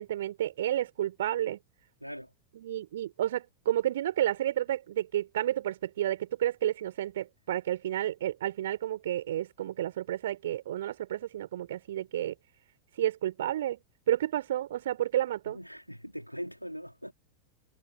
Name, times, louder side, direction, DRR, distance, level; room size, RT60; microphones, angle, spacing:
voice 1, 0.0-1.6 2.5-12.3 13.0-13.8 14.1-15.6, right 12 dB, 60° right, 4.6 m, -31 dB
voice 2, 2.0-2.3 15.5-17.1, equal, 90° right, 3.2 m, -41 dB
figure-of-eight pair, 90°, 0 cm